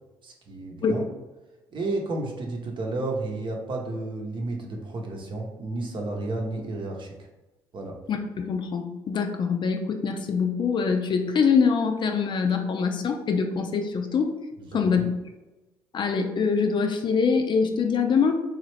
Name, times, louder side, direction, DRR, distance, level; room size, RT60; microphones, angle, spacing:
voice 1, 0.2-1.0 1.7-7.1 7.7-8.0 14.6-15.1, right 2 dB, 45° right, 1 dB, 0.8 m, -32 dB
voice 2, 8.1-14.3 14.7-15.0 15.9-18.4, left 5 dB, 45° left, 5 dB, 0.4 m, -24 dB
3.1 x 2.4 x 3.2 m, 1.1 s
hypercardioid pair, 60°, 11 cm